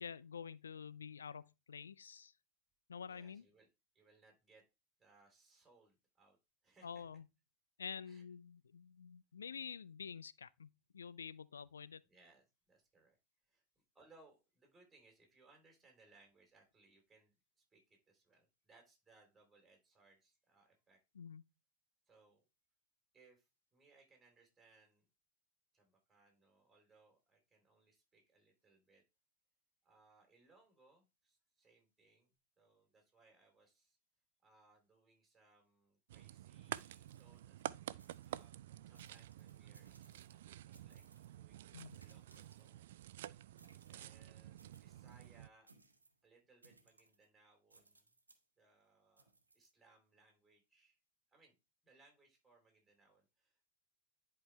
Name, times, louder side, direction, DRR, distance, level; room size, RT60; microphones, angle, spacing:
voice 1, 0.0-2.3 2.9-3.4 6.8-7.2 7.8-12.0 21.2-21.4 41.7-42.0, left 6 dB, 70° left, 0.3 m, -48 dB
voice 2, 3.1-3.7 3.9-4.6 5.0-6.4 6.6-7.1 8.0-8.2 12.0-13.2 13.5-13.6 13.9-17.3 17.7-21.0 22.1-22.4 23.1-25.1 25.7-29.0 29.8-34.0 34.4-37.6 38.0-38.6 38.9-41.0 41.3-43.0 43.5-45.7 46.2-48.1 48.6-49.3 49.5-51.0 51.3-51.6 51.8-53.7, right 3 dB, 10° right, 3.6 m, -69 dB
sound 1, 36.1-45.5, right 13 dB, 55° right, 0.3 m, -50 dB
sound 2, 36.6-37.7 38.0-38.5 38.9-40.4 40.7-41.4 41.8-43.0 43.6-44.1 44.6-45.3 45.7-46.2 46.6-47.3 47.7-48.4 49.2-49.7, right 3 dB, 80° right, 1.0 m, -68 dB
10.5 x 4.6 x 3.2 m
figure-of-eight pair, 90°, 0 cm